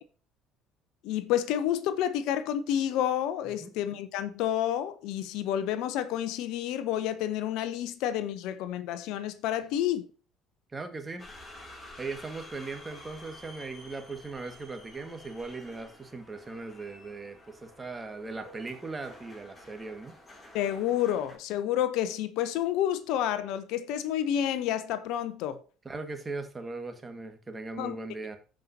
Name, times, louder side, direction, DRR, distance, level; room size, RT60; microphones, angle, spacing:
voice 1, 1.0-10.1 20.5-25.6 27.8-28.0, left 11 dB, 65° left, 0.7 m, -29 dB
voice 2, 10.7-11.3 12.0-20.1 25.9-28.4, right 3 dB, 25° right, 1.8 m, -39 dB
sound 1, 11.2-21.4, left 1 dB, 20° left, 4.0 m, -50 dB
15.0 x 5.4 x 2.8 m
hypercardioid pair, 60°, 0 cm